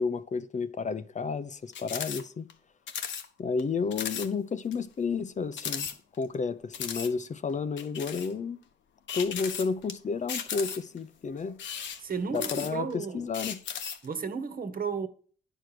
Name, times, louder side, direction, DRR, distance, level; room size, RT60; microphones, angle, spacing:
voice 1, 0.0-2.5 3.4-5.9 6.2-8.6 9.1-11.6 12.3-12.9 13.1-13.6, left 5 dB, 35° left, 0.7 m, -31 dB
sound 1, 1.7-2.2 2.5-2.6 2.9-3.3 3.6-3.7 3.9-4.3 4.7-4.8 5.5-6.3 6.7-7.1 7.8-8.3 9.1-9.9 10.3-11.0 11.5-12.9 13.3-14.1, left 7 dB, 65° left, 1.2 m, -36 dB
voice 2, 12.0-13.3 14.0-15.1, right 5 dB, 45° right, 1.4 m, -33 dB
9.9 x 5.0 x 6.0 m
cardioid pair, 90°, 20 cm